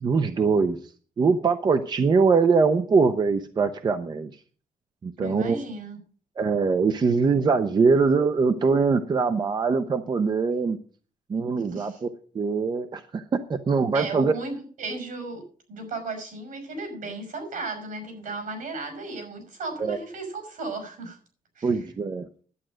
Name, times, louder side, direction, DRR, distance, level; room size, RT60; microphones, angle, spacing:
voice 1, 0.0-0.8 1.2-4.3 5.0-5.6 6.4-10.8 11.3-12.1 12.3-13.2 13.5-14.3 19.8-20.0 21.6-22.3, right 4 dB, 30° right, 9 dB, 0.6 m, -22 dB
voice 2, 5.2-6.0 11.7-12.0 13.9-15.4 15.7-21.2 21.5-21.8, right 3 dB, 75° right, 6 dB, 5.9 m, -35 dB
11.0 x 8.9 x 6.2 m, 0.42 s
wide cardioid pair, 180°, 14 cm